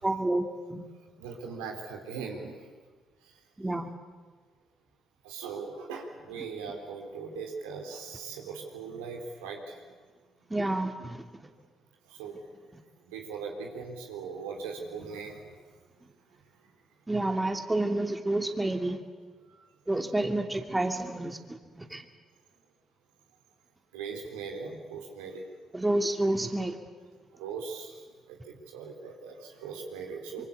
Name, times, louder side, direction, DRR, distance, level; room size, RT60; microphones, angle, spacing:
voice 1, 0.0-0.8 3.6-3.9 10.5-11.2 17.1-19.0 19.9-22.0 25.7-26.8, right 2 dB, 15° right, 5 dB, 2.7 m, -29 dB
voice 2, 1.2-2.5 5.2-9.8 12.1-12.4 13.1-15.4 23.9-25.4 27.4-27.9 28.3-30.4, right 5 dB, 85° right, 2 dB, 3.5 m, -39 dB
25.0 x 24.0 x 8.3 m, 1.4 s
hypercardioid pair, 50°, 0 cm